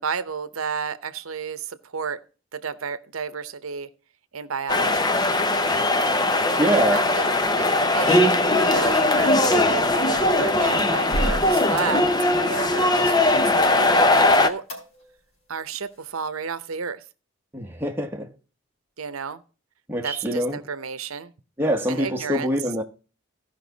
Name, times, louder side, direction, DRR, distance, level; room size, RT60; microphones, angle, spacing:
voice 1, 0.0-2.2 2.5-3.9 4.3-5.1 6.6-7.3 7.6-8.5 8.7-14.6 15.5-17.0 19.0-19.4 20.0-21.3 21.9-22.5, right 6 dB, 85° right, 0.8 m, -32 dB
sound 1, 4.7-14.5, left 2 dB, 20° left, 0.7 m, -20 dB
voice 2, 6.6-7.0 17.5-18.3 19.9-20.6 21.6-22.8, equal, 10° right, 1.2 m, -24 dB
sound 2, 9.4-10.4 11.1-12.0 14.7-15.3 15.6-15.7 15.9-16.0, right 1 dB, 70° left, 3.8 m, -32 dB
15.5 x 5.6 x 4.0 m
head